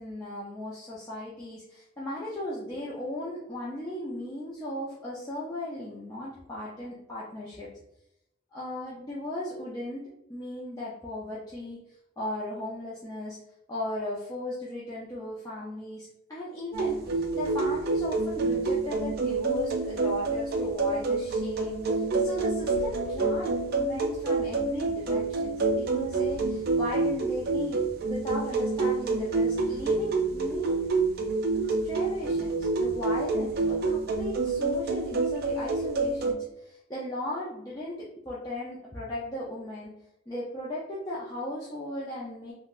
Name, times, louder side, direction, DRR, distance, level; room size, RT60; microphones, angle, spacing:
voice 1, 0.0-7.7 8.5-10.0 10.3-11.8 12.2-13.4 13.7-30.8 31.8-39.9 40.3-42.5, left 1 dB, 15° left, -7 dB, 0.5 m, -36 dB
sound 1, 16.7-36.3, right 3 dB, 50° right, 0.4 m, -28 dB
3.7 x 2.1 x 2.4 m, 0.84 s
head